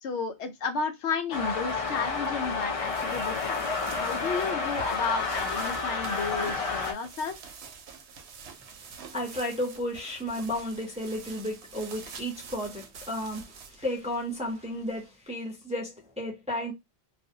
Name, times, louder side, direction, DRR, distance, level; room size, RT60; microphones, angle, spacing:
voice 1, 0.0-7.4, left 5 dB, 85° left, 0.9 m, -32 dB
sound 1, 1.3-6.9, left 4 dB, 55° left, 0.4 m, -30 dB
sound 2, 2.5-15.1, right 6 dB, 75° right, 0.8 m, -47 dB
voice 2, 9.1-16.7, left 1 dB, 10° right, 0.5 m, -33 dB
2.4 x 2.0 x 2.6 m
omnidirectional pair, 1.1 m